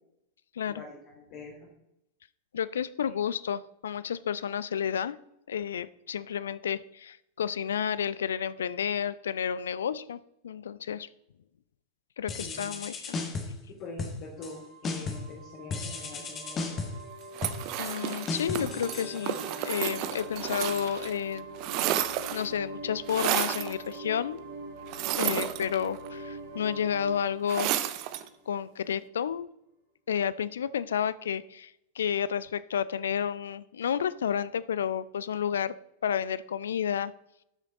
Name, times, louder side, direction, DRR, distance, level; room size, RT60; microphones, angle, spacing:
voice 1, 0.7-1.7 12.3-12.7 13.7-16.8, left 3 dB, 45° left, -6 dB, 3.2 m, -45 dB
voice 2, 2.5-5.2 5.5-10.2 10.4-11.1 12.2-13.2 17.8-19.4 19.6-21.5 22.3-24.4 25.2-27.7 28.5-29.5 30.1-35.7 36.0-37.1, left 8 dB, 65° left, 18 dB, 0.4 m, -31 dB
sound 1, 12.3-13.6 14.0-14.6 14.8-15.3 15.7-19.7, left 3 dB, 25° left, 1.6 m, -36 dB
sound 2, 14.4-28.8, right 2 dB, 65° right, 1.9 m, -43 dB
sound 3, 17.3-21.1 21.4-22.6 23.1-23.7 24.9-26.1 27.5-28.3, right 12 dB, 45° right, 0.7 m, -31 dB
12.5 x 6.3 x 3.9 m, 0.82 s
figure-of-eight pair, 90°, 0 cm